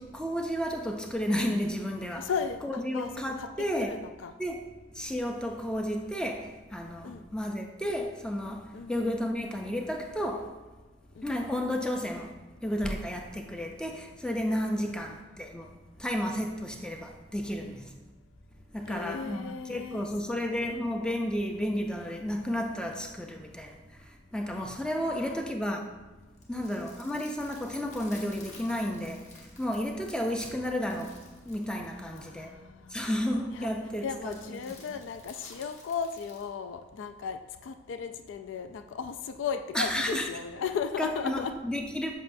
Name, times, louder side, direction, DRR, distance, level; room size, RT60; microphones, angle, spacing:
voice 1, 0.0-2.3 2.6-4.0 4.4-4.7 4.9-10.5 11.2-12.3 12.6-15.7 16.0-17.9 18.7-25.9 26.5-32.5 32.9-34.4 39.7-40.3 41.0-42.1, equal, 5° left, 0.4 m, -32 dB
voice 2, 2.2-3.1 3.4-3.5 3.8-4.3 7.0-7.2 8.7-8.9 11.2-11.3 14.7-14.9 17.6-17.8 18.9-20.1 20.5-20.7 25.0-25.5 26.5-26.9 31.9-33.0 33.5-33.7 34.0-41.5, left 6 dB, 85° left, 0.3 m, -36 dB
sound 1, 26.2-32.5 34.2-36.5, left 2 dB, 35° left, 1.1 m, -52 dB
7.4 x 5.4 x 2.6 m
head